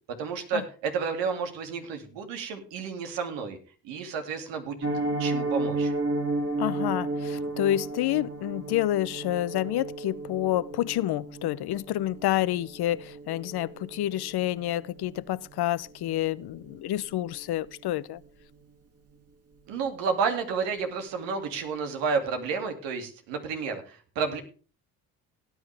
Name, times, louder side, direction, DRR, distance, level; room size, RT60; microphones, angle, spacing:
voice 1, 0.2-3.6 3.8-4.9 5.2-5.9 19.7-24.4, right 5 dB, 85° right, 2.6 m, -31 dB
Piano, 4.8-15.7 16.0-16.2 16.5-16.7 17.0-17.3 17.6-17.7, right 2 dB, 35° right, 2.6 m, -33 dB
voice 2, 6.6-18.2, left 14 dB, 60° left, 0.7 m, -28 dB
17.5 x 9.6 x 3.4 m
supercardioid pair, 60°, 43 cm